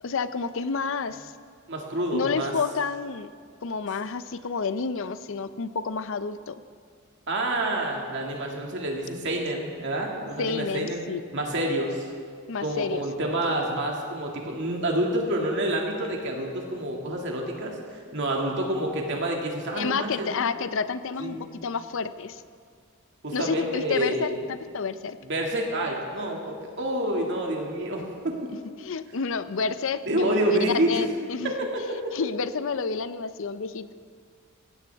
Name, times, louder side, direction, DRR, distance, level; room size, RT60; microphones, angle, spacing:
voice 1, 0.0-1.3 2.1-3.3 3.6-6.6 10.4-11.2 12.5-13.0 19.7-22.4 23.3-25.2 28.5-31.5 32.1-33.9, left 5 dB, 60° left, 13 dB, 0.5 m, -30 dB
voice 2, 1.7-2.5 7.3-11.0 11.3-12.0 12.6-20.3 21.2-21.5 23.2-24.3 25.2-28.4 30.1-31.0, right 1 dB, 55° right, 0 dB, 2.2 m, -28 dB
17.5 x 16.0 x 3.5 m, 2.1 s
head